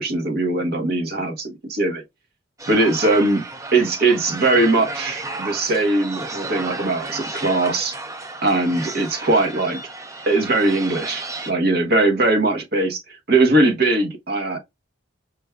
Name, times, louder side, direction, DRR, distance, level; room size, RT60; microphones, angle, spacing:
voice 1, 0.0-2.0 2.7-3.4 3.7-7.9 8.4-9.8 10.3-13.0 13.3-14.6, right 2 dB, 50° right, 1.1 m, -20 dB
sound 1, 2.6-11.5, right 2 dB, 15° right, 0.4 m, -33 dB
5.1 x 2.3 x 3.3 m
head